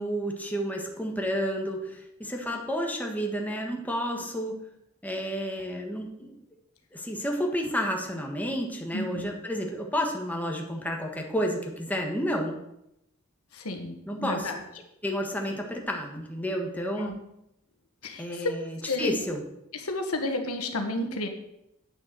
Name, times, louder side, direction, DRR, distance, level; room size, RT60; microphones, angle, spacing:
voice 1, 0.0-4.6 5.0-6.4 6.9-12.6 14.1-14.5 15.0-17.1 18.2-19.4, equal, 5° left, 1 dB, 1.4 m, -31 dB
voice 2, 8.9-9.3 13.5-14.6 17.0-17.1 18.0-18.5 18.9-19.2 19.7-21.3, left 2 dB, 90° left, 5 dB, 1.5 m, -31 dB
9.1 x 6.9 x 6.7 m, 0.83 s
head